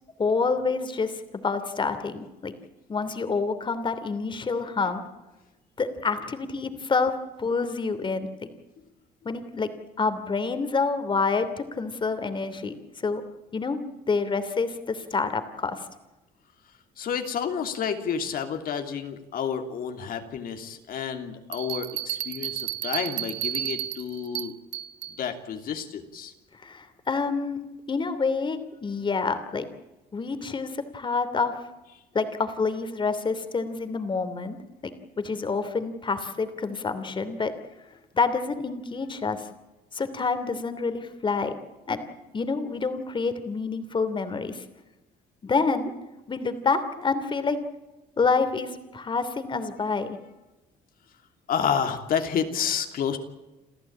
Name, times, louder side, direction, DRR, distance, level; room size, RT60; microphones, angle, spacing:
voice 1, 0.2-2.5 2.9-5.0 5.8-7.1 7.4-8.5 9.2-9.7 10.0-12.7 13.0-13.2 13.5-13.8 14.1-15.9 26.6-27.6 27.9-29.7 30.1-31.5 32.1-34.6 34.8-34.9 35.2-37.5 38.1-39.5 39.9-41.5 41.9-42.0 42.3-44.6 45.4-45.9 46.3-47.6 48.2-50.2, left 4 dB, 30° left, 10 dB, 3.0 m, -27 dB
voice 2, 17.0-24.5 25.2-26.3 51.5-53.2, left 7 dB, 60° left, 6 dB, 3.0 m, -30 dB
Bell, 21.5-25.2, right 14 dB, 90° right, 0.9 m, -32 dB
29.0 x 13.5 x 8.7 m, 1.1 s
cardioid pair, 110°, 17 cm